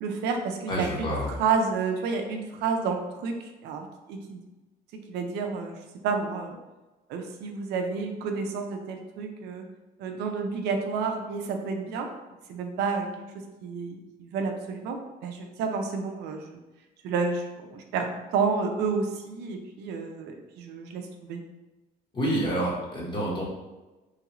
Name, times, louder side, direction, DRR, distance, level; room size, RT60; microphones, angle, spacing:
voice 1, 0.0-4.4 5.1-6.6 7.1-9.7 10.0-12.1 12.5-13.1 13.3-16.6 17.0-21.4, right 5 dB, 85° right, 4 dB, 0.5 m, -30 dB
voice 2, 0.7-1.3 22.1-23.4, right 1 dB, 25° left, -4 dB, 1.1 m, -28 dB
3.1 x 2.4 x 2.9 m, 1.1 s
cardioid pair, 110°, 17 cm